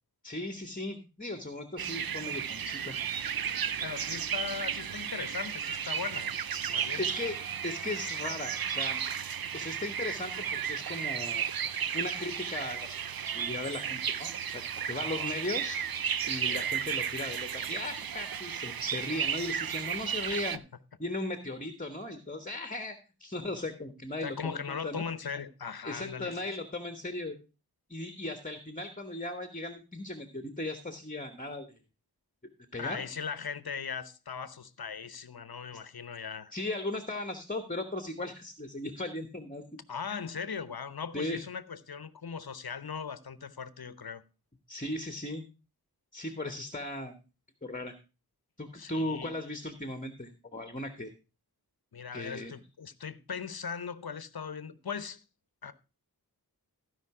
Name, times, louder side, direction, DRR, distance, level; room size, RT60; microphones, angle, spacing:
voice 1, 0.2-2.9 7.0-7.4 7.6-9.0 9.5-11.5 11.9-15.8 16.3-20.6 21.0-22.9 23.2-25.0 25.8-27.4 27.9-31.7 32.7-33.0 36.5-39.6 40.1-40.2 41.1-41.4 44.7-45.4 46.1-47.1 47.6-47.9 48.6-51.1 52.1-52.5, left 2 dB, 20° left, 1.2 m, -37 dB
sound 1, 1.8-20.6, right 8 dB, 65° right, 0.6 m, -34 dB
voice 2, 3.8-6.3 6.7-7.1 14.9-15.4 16.5-16.7 20.3-20.6 24.2-26.5 32.8-36.5 39.9-44.2 48.7-49.3 51.9-55.2 55.6-55.7, left 6 dB, 70° left, 0.8 m, -39 dB
15.5 x 5.2 x 4.8 m
wide cardioid pair, 55°, 38 cm